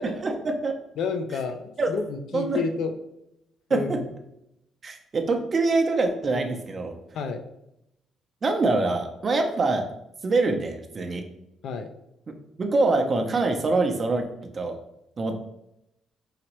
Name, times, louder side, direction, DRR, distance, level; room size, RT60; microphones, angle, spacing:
voice 1, 0.0-0.7 1.8-1.9 2.3-2.6 3.7-4.0 4.8-6.9 8.4-9.9 10.2-11.2 12.6-14.3 14.5-14.8 15.2-15.4, right 3 dB, 40° right, 4 dB, 0.7 m, -24 dB
voice 2, 1.0-2.9 3.7-4.1 7.1-7.4 11.6-11.9, left 5 dB, 75° left, 6 dB, 0.5 m, -30 dB
4.9 x 3.0 x 3.0 m, 0.82 s
cardioid pair, 90°, 0 cm